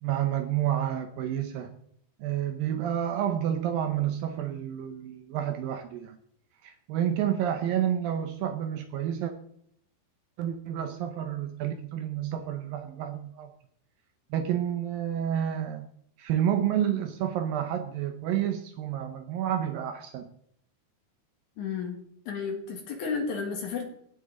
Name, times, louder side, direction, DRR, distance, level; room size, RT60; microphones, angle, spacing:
voice 1, 0.0-1.7 2.2-6.2 6.6-9.3 10.4-13.5 14.3-15.9 16.2-20.3, right 10 dB, 75° right, 7 dB, 2.3 m, -29 dB
voice 2, 21.6-22.0 22.3-23.9, left 5 dB, 55° left, 3 dB, 2.6 m, -32 dB
16.5 x 6.6 x 3.8 m, 0.67 s
omnidirectional pair, 4.7 m